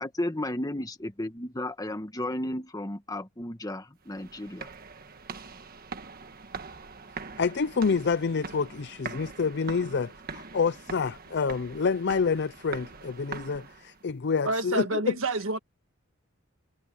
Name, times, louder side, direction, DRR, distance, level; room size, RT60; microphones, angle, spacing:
voice 1, 0.0-4.7, left 1 dB, 20° left, 1.6 m, -33 dB
sound 1, 4.0-14.1, right 4 dB, 45° right, 1.5 m, -43 dB
voice 2, 7.4-15.1, left 5 dB, 55° left, 0.5 m, -28 dB
voice 3, 14.4-15.6, right 3 dB, 75° right, 1.6 m, -28 dB
head